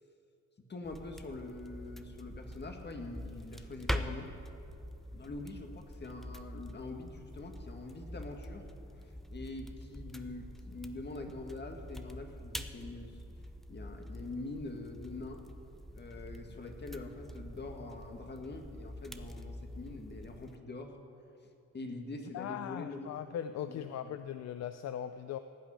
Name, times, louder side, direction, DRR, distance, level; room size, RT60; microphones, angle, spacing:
voice 1, 0.7-4.3 5.1-8.7 9.3-13.2 13.7-15.4 15.9-21.0 21.7-23.2 23.7-24.1, left 2 dB, 35° left, 4 dB, 1.8 m, -44 dB
sound 1, 0.8-20.6, equal, ahead, 0.7 m, -45 dB
voice 2, 22.3-25.4, left 9 dB, 60° left, 11 dB, 0.5 m, -39 dB
17.0 x 6.1 x 9.9 m, 2.6 s
cardioid pair, 90°, 30 cm